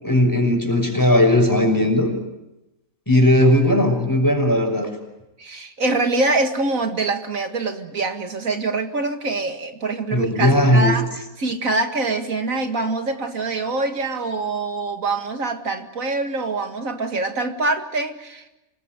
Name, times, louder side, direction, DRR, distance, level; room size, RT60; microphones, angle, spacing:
voice 1, 0.0-2.1 3.1-4.9 10.1-10.9, left 1 dB, 15° left, 4 dB, 5.9 m, -17 dB
voice 2, 5.4-18.6, right 3 dB, 90° right, 5 dB, 2.5 m, -24 dB
26.5 x 21.5 x 9.1 m, 0.95 s
omnidirectional pair, 1.4 m